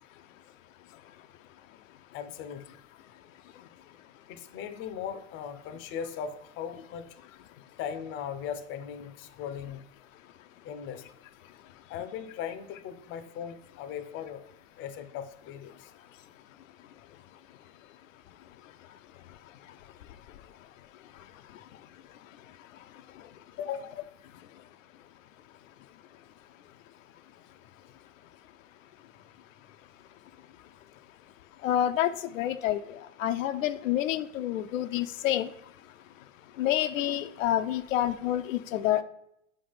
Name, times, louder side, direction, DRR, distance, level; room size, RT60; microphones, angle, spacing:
voice 1, 2.1-2.6 4.3-7.2 7.8-9.8 10.6-11.2 11.9-14.4 14.8-15.9 23.6-24.0, left 8 dB, 30° left, 10 dB, 0.5 m, -38 dB
voice 2, 31.6-32.8 33.2-35.5 36.6-39.0, left 12 dB, 85° left, 11 dB, 0.5 m, -28 dB
5.0 x 3.5 x 5.5 m, 0.79 s
hypercardioid pair, 115°, 39 cm